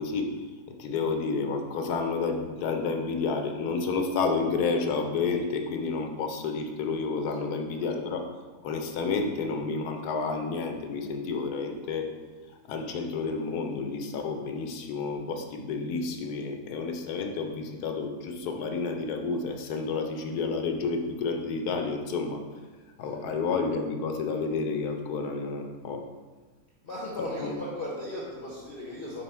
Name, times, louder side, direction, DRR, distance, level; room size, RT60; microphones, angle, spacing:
voice 1, 0.0-8.2 8.6-12.1 12.7-22.4 23.0-26.1 27.4-27.6, left 4 dB, 80° left, 4 dB, 1.2 m, -30 dB
voice 2, 26.8-29.2, left 1 dB, 45° left, -4 dB, 0.9 m, -36 dB
5.4 x 4.6 x 4.3 m, 1.4 s
omnidirectional pair, 1.7 m